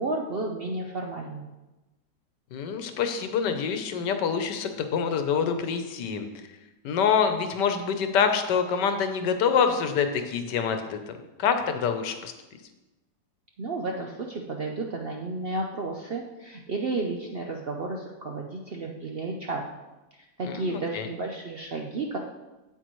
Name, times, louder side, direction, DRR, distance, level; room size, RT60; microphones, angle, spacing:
voice 1, 0.0-1.5 13.6-19.7 20.1-22.2, right 2 dB, 60° right, 1 dB, 0.6 m, -32 dB
voice 2, 2.5-6.3 6.8-11.1 11.4-12.3 20.4-21.1, left 6 dB, 85° left, 7 dB, 1.4 m, -26 dB
9.1 x 8.0 x 3.1 m, 1.1 s
omnidirectional pair, 1.8 m